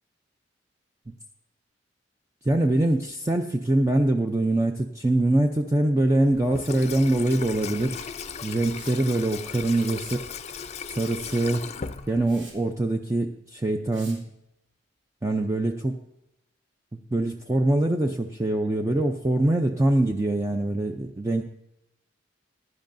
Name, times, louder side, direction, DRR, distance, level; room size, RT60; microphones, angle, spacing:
voice 1, 2.4-8.0 8.4-10.2 10.9-11.7 12.1-14.3 15.2-16.0 17.1-21.5, right 1 dB, 15° right, 3 dB, 0.5 m, -24 dB
Water tap faucet / Sink (filling or washing), 6.3-12.6, left 5 dB, 35° left, 0.5 m, -37 dB
Liquid, 8.8-9.0 9.7-10.2 11.3-11.5 11.9-12.0 12.3-12.6 13.9-14.2, right 3 dB, 85° right, 2.5 m, -47 dB
16.0 x 10.5 x 2.6 m, 0.86 s
head